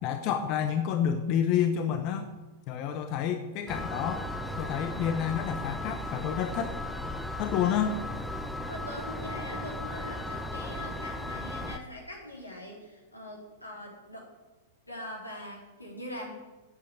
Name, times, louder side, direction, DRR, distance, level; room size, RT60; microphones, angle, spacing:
voice 1, 0.0-2.3 2.7-4.3 4.6-6.7 7.4-8.0, left 8 dB, 40° left, 7 dB, 0.9 m, -29 dB
sound 1, 3.7-11.8, left 1 dB, ahead, 0.9 m, -36 dB
voice 2, 8.7-14.3 14.9-16.3, left 1 dB, 90° left, -2 dB, 4.0 m, -42 dB
9.6 x 7.8 x 8.5 m, 1.2 s
figure-of-eight pair, 100°, 0 cm